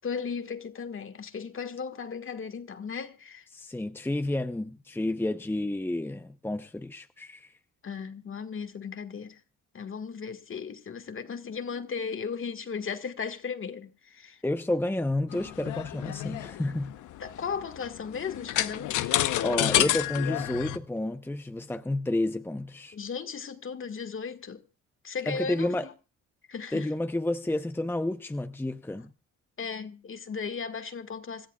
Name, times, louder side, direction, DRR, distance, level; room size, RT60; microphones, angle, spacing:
voice 1, 0.0-3.5 7.8-9.4 9.7-14.4 17.2-19.0 22.9-24.6 25.0-25.9 26.5-26.9 29.6-31.5, left 6 dB, 45° left, 1.7 m, -36 dB
voice 2, 3.5-7.5 14.4-16.9 19.4-23.0 25.3-25.9 26.7-29.1, left 1 dB, 5° left, 0.8 m, -30 dB
sound 1, 15.3-20.8, left 13 dB, 85° left, 0.9 m, -29 dB
26.5 x 13.5 x 2.4 m
cardioid pair, 90°, 30 cm